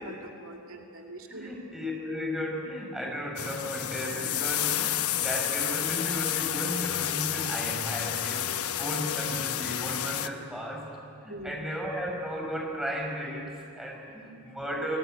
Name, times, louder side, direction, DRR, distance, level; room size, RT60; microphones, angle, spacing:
voice 1, 0.0-1.5 8.5-8.7 11.3-11.6, right 1 dB, 65° right, 2 dB, 2.3 m, -43 dB
voice 2, 1.3-10.9 11.2-15.0, equal, ahead, -1 dB, 5.3 m, -35 dB
sound 1, 3.4-10.3, left 11 dB, 75° left, 0.9 m, -30 dB
29.0 x 20.0 x 9.0 m, 2.5 s
head